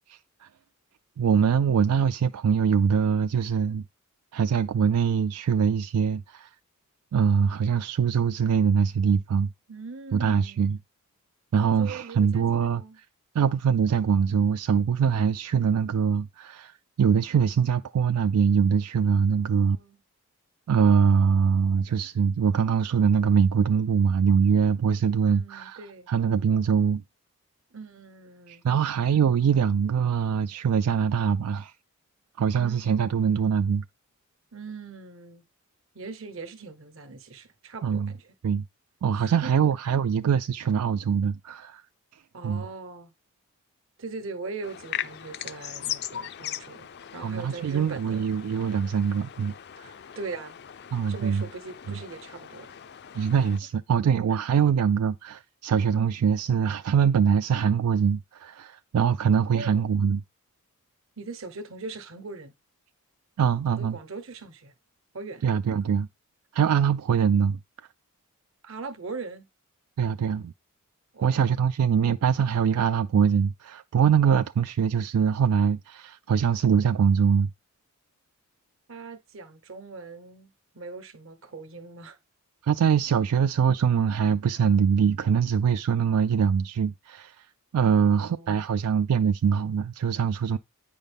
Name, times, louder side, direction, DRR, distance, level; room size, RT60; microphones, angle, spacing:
voice 1, 0.1-0.5 1.2-3.8 4.3-6.5 7.1-9.5 10.1-10.8 11.5-12.8 13.3-19.8 20.7-27.0 28.5-31.7 32.4-33.8 37.8-38.1 38.4-38.6 39.0-41.8 42.4-42.7 47.2-49.9 50.9-51.4 51.9-52.0 53.1-60.2 63.4-64.0 65.4-66.1 66.5-67.6 70.0-70.5 71.2-77.5 82.6-87.5 87.7-90.6, right 7 dB, 85° right, 0.3 m, -23 dB
voice 2, 9.7-10.7 11.6-13.0 19.4-20.0 25.2-26.1 27.7-28.6 32.5-32.8 34.5-35.4 35.9-38.3 39.1-39.5 42.3-43.1 44.0-48.3 50.1-50.6 51.1-52.7 59.5-59.8 61.2-62.5 63.7-64.7 65.1-65.4 68.6-69.5 71.1-71.4 78.9-82.2 87.9-88.6, right 4 dB, 60° right, 1.0 m, -40 dB
sound 1, 44.6-53.6, left 10 dB, 45° left, 0.4 m, -39 dB
9.0 x 5.4 x 3.4 m
head